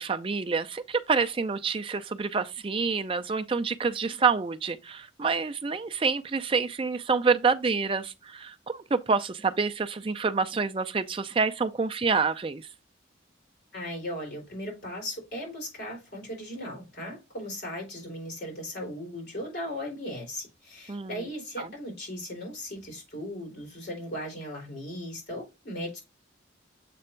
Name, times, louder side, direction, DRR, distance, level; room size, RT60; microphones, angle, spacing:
voice 1, 0.0-12.7 20.9-21.2 21.6-21.7, right 4 dB, 25° right, 0.4 m, -27 dB
voice 2, 13.7-26.0, equal, 55° left, 4.1 m, -37 dB
7.6 x 3.4 x 4.4 m
head